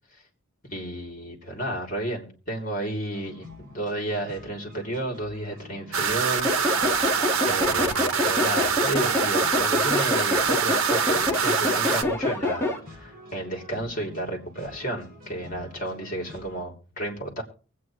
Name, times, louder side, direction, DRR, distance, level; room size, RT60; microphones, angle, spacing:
voice 1, 0.7-6.5 7.5-17.4, right 1 dB, 40° left, 1 dB, 3.1 m, -32 dB
sound 1, 3.1-16.6, left 2 dB, 45° right, 6.1 m, -47 dB
sound 2, 5.9-12.0, right 6 dB, 85° right, 0.9 m, -25 dB
sound 3, 6.4-12.8, left 2 dB, 10° left, 1.7 m, -27 dB
23.5 x 8.5 x 3.2 m, 0.37 s
head